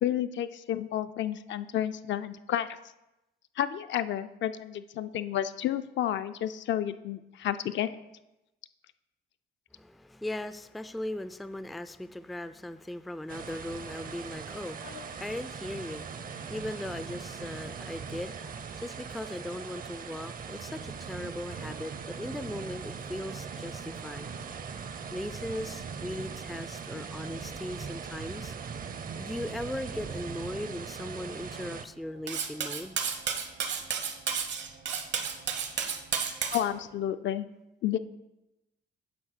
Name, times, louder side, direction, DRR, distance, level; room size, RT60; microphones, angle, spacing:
voice 1, 0.0-2.7 3.6-8.0 14.8-15.0 36.5-37.5 37.8-38.0, left 11 dB, 65° left, 11 dB, 0.5 m, -31 dB
voice 2, 9.7-24.3 25.1-28.6 29.2-33.0, left 1 dB, ahead, 12 dB, 0.3 m, -38 dB
sound 1, 13.3-31.8, right 6 dB, 45° right, 0.6 m, -40 dB
Cutlery silverware, 32.3-36.6, right 7 dB, 65° right, 0.9 m, -32 dB
9.4 x 3.5 x 6.5 m, 0.97 s
cardioid pair, 90°, 20 cm